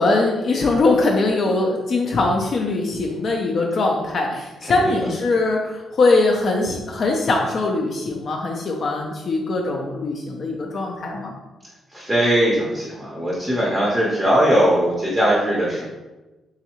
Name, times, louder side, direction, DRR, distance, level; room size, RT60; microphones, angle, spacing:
voice 1, 0.0-11.3, left 3 dB, 40° left, 0 dB, 0.4 m, -21 dB
voice 2, 4.6-5.1 11.9-15.9, right 1 dB, 5° right, -5 dB, 0.6 m, -20 dB
3.6 x 3.1 x 2.9 m, 1.1 s
cardioid pair, 170°, 0 cm